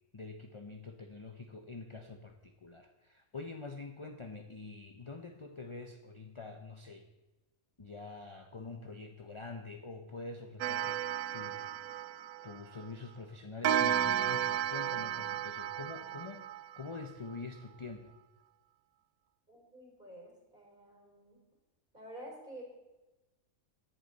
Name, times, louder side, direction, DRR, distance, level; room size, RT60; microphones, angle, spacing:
voice 1, 0.1-7.1 7.8-11.0 11.3-12.0 12.4-16.5 16.8-18.1, left 3 dB, 25° left, 4 dB, 0.7 m, -46 dB
Clock, 10.6-12.9 13.6-17.0, right 10 dB, 90° right, 1.1 m, -33 dB
voice 2, 19.5-21.4 21.9-22.6, right 1 dB, 35° right, -1 dB, 4.6 m, -50 dB
17.0 x 11.0 x 4.1 m, 1.1 s
omnidirectional pair, 1.5 m